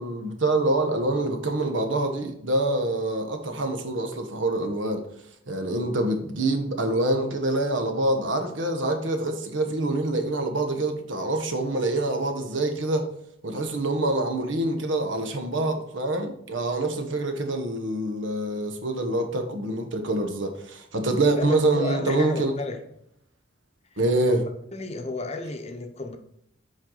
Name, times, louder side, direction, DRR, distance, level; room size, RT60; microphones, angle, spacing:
voice 1, 0.0-5.0 5.5-13.1 13.4-22.5 24.0-24.4, right 2 dB, 90° right, 1.1 m, -26 dB
voice 2, 21.4-22.8 23.9-24.4 24.7-26.2, left 3 dB, 35° left, 0.7 m, -33 dB
7.4 x 4.7 x 3.9 m
head